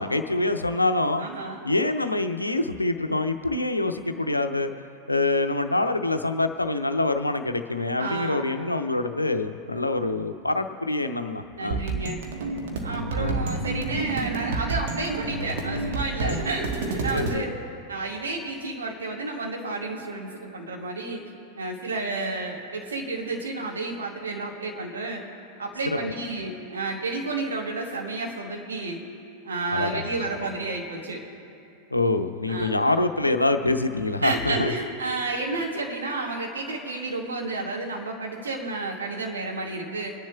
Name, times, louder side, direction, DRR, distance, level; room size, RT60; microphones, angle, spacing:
voice 1, 0.0-1.2 1.6-4.7 5.1-11.8 13.1-13.4 16.2-16.4 17.1-17.4 29.7-30.1 31.9-34.7, left 2 dB, 85° left, 8 dB, 0.6 m, -25 dB
voice 2, 1.2-1.6 8.0-8.5 11.5-12.2 12.8-17.5 17.9-21.2 21.6-25.2 25.6-29.0 29.4-31.2 32.5-32.7 34.2-40.1, right 3 dB, 70° right, -1 dB, 1.9 m, -31 dB
sound 1, 11.7-17.3, right 3 dB, 55° right, 1.3 m, -29 dB
29.5 x 10.5 x 2.3 m, 2.6 s
figure-of-eight pair, 90°, 0 cm